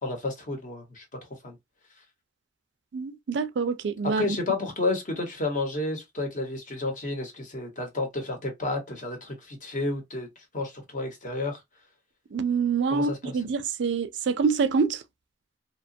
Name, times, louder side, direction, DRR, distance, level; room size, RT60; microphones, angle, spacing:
voice 1, 0.0-1.0 1.4-1.6 4.1-10.3 10.5-11.6 12.9-13.1, left 2 dB, 45° left, 0.9 m, -31 dB
voice 2, 2.9-4.4 12.3-15.0, right 5 dB, 75° right, 0.4 m, -26 dB
2.9 x 2.2 x 2.6 m
head